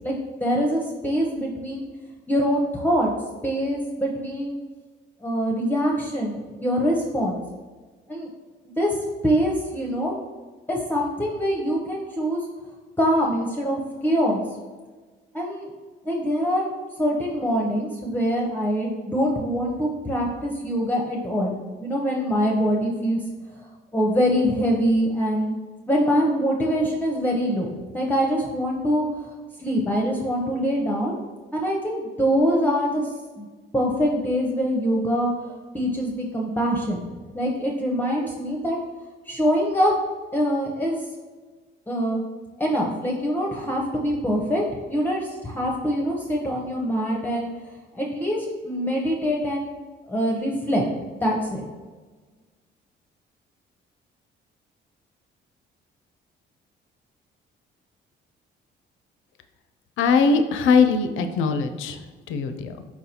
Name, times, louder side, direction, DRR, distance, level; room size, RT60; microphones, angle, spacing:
voice 1, 0.4-1.8 2.3-3.1 3.4-4.6 5.2-7.4 8.1-8.3 8.8-10.1 10.7-12.5 13.0-14.4 15.3-15.7 16.0-16.7 17.0-21.5 21.8-23.2 23.9-25.5 25.9-29.0 29.6-31.2 31.5-33.1 33.4-33.5 33.7-37.0 37.3-38.8 39.3-39.9 40.3-41.0 41.9-42.2 42.6-44.6 44.9-47.5 47.9-49.7 50.1-50.9 51.2-51.6, equal, 10° left, -2 dB, 0.6 m, -24 dB
voice 2, 60.0-61.9 62.3-62.7, left 5 dB, 80° left, 8 dB, 0.4 m, -20 dB
4.5 x 4.0 x 2.8 m, 1.4 s
cardioid pair, 90°, 20 cm